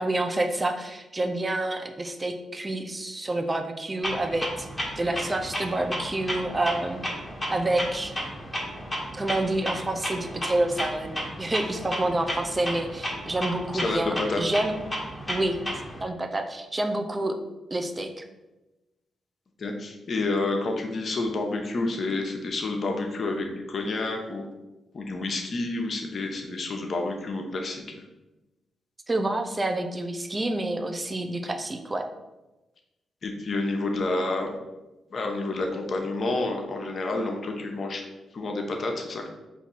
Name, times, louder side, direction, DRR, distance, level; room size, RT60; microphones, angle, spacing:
voice 1, 0.0-4.7 5.0-7.1 7.5-8.1 9.2-14.7 15.3-15.6 16.0-17.4 17.7-18.2 29.1-32.0, right 2 dB, 25° right, 6 dB, 0.6 m, -28 dB
Clock, 4.0-16.0, equal, 20° left, 1.4 m, -33 dB
voice 2, 13.7-14.4 19.6-24.4 24.9-27.8 33.2-34.5 35.1-38.0 38.3-39.3, left 2 dB, 55° left, 2 dB, 0.9 m, -29 dB
4.6 x 2.7 x 4.1 m, 1.0 s
supercardioid pair, 55°, 0 cm